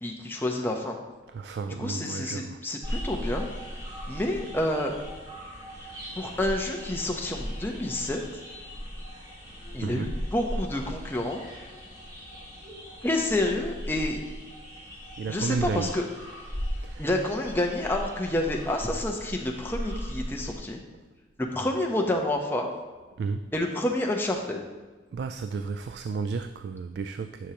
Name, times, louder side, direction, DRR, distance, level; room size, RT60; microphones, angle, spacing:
voice 1, 0.0-1.0 1.8-3.5 4.1-4.9 6.1-8.2 9.7-11.4 13.0-14.2 15.3-16.1 17.0-20.8 21.4-22.7 23.5-24.6, left 1 dB, 10° left, 1 dB, 0.8 m, -28 dB
voice 2, 1.3-2.6 9.8-10.2 15.2-15.9 16.8-17.1 23.2-23.5 25.1-27.5, right 4 dB, 65° right, 8 dB, 0.3 m, -32 dB
sound 1, 2.8-20.5, equal, 20° right, 2.1 m, -38 dB
10.0 x 6.3 x 2.9 m, 1.3 s
head